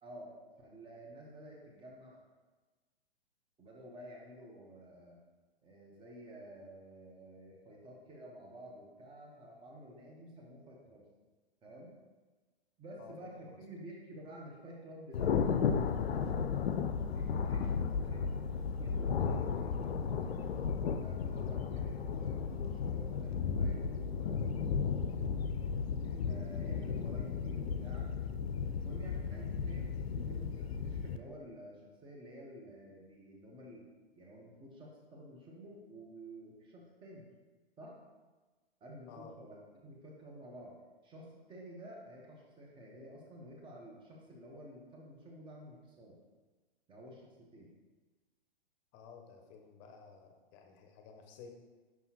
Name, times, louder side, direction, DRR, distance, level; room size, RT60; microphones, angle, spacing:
voice 1, 0.0-2.2 3.6-5.2 5.6-11.1 11.6-11.9 12.8-15.6 17.1-24.6 26.0-28.1 28.7-37.3 37.8-37.9 38.8-40.7 41.0-46.2 46.9-47.7, equal, 15° right, -2 dB, 1.1 m, -51 dB
Thunder, 15.1-31.2, left 6 dB, 80° left, 0.5 m, -34 dB
voice 2, 48.9-51.5, left 5 dB, 35° left, 4 dB, 0.8 m, -53 dB
6.0 x 5.4 x 2.9 m, 1.3 s
hypercardioid pair, 120°, 31 cm